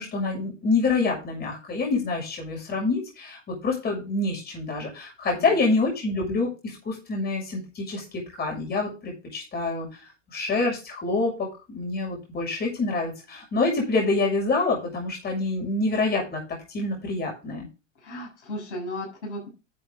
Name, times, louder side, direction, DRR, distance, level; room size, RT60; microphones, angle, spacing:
voice 1, 0.0-9.9 10.3-17.7, left 3 dB, 25° left, 0 dB, 6.7 m, -27 dB
voice 2, 18.0-19.5, left 1 dB, 65° left, 0 dB, 6.9 m, -35 dB
11.5 x 8.1 x 3.8 m, 0.30 s
figure-of-eight pair, 95°, 39 cm